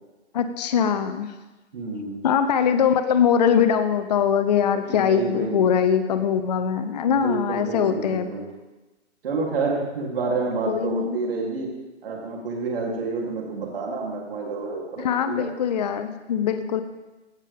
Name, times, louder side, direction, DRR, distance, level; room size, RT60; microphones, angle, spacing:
voice 1, 0.3-1.3 2.2-8.3 10.7-11.2 15.0-16.8, left 8 dB, 35° left, 9 dB, 0.6 m, -22 dB
voice 2, 1.7-2.2 4.9-5.6 7.0-8.4 9.2-11.7 12.0-15.5, right 4 dB, 50° right, -2 dB, 3.2 m, -29 dB
16.5 x 7.1 x 3.6 m, 1.1 s
hypercardioid pair, 155°, 35 cm